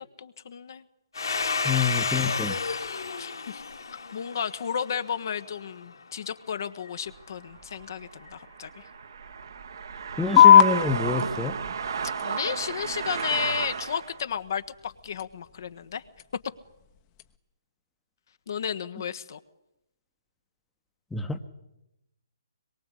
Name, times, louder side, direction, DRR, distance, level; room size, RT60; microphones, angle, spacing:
voice 1, 0.2-0.8 3.2-3.6 3.9-8.9 12.2-16.0 18.5-19.4, left 7 dB, 55° left, 10 dB, 1.3 m, -33 dB
Domestic sounds home sounds, 1.1-5.6, left 4 dB, 70° left, 3.3 m, -31 dB
voice 2, 1.6-2.6 10.2-11.6 21.1-21.4, left 4 dB, 5° left, 7 dB, 1.2 m, -27 dB
sound 1, 7.1-14.2, right 6 dB, 60° right, 1.6 m, -34 dB
sound 2, 10.4-17.4, left 9 dB, 25° left, 1.2 m, -24 dB
25.0 x 22.5 x 8.4 m, 0.90 s
figure-of-eight pair, 140°, 2 cm